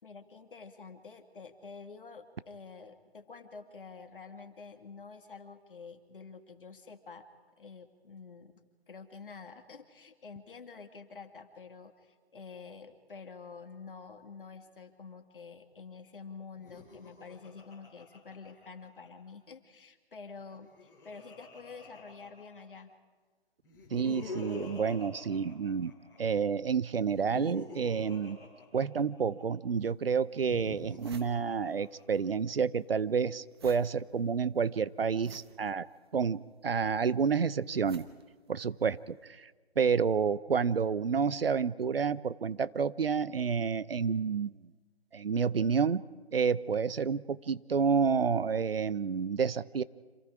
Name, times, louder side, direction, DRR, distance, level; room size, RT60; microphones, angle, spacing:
voice 1, 0.0-7.2 7.6-8.5 8.9-22.9, left 5 dB, 55° left, 7 dB, 2.2 m, -48 dB
Laughter, 16.5-19.1 20.4-22.8 23.6-26.2 27.0-29.4 30.3-32.2, left 3 dB, 10° left, 6.2 m, -46 dB
voice 2, 23.9-25.9 26.2-28.4 28.7-35.9 36.1-38.1 38.5-39.5 39.8-44.6 45.1-46.0 46.3-49.8, right 6 dB, 65° right, 18 dB, 0.8 m, -29 dB
sound 1, 29.7-29.8 30.4-30.5 30.7-32.2 32.5-39.1, right 5 dB, 25° right, 1.1 m, -55 dB
28.5 x 27.0 x 4.8 m, 1.4 s
figure-of-eight pair, 160°, 32 cm